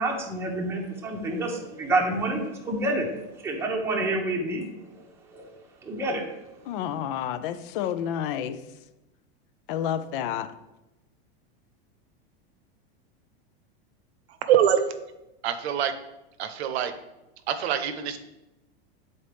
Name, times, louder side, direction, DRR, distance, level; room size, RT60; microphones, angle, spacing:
voice 1, 0.0-3.1 3.4-4.6 4.9-5.0 5.3-5.5 5.8-6.2, right 2 dB, 10° right, -1 dB, 0.9 m, -28 dB
voice 2, 6.7-8.6 9.7-10.5, left 10 dB, 55° left, 12 dB, 0.6 m, -30 dB
voice 3, 14.5-14.8 15.4-15.9 16.4-16.9 17.5-18.2, right 9 dB, 80° right, 9 dB, 0.9 m, -24 dB
8.6 x 4.1 x 3.4 m, 0.95 s
supercardioid pair, 140°, 32 cm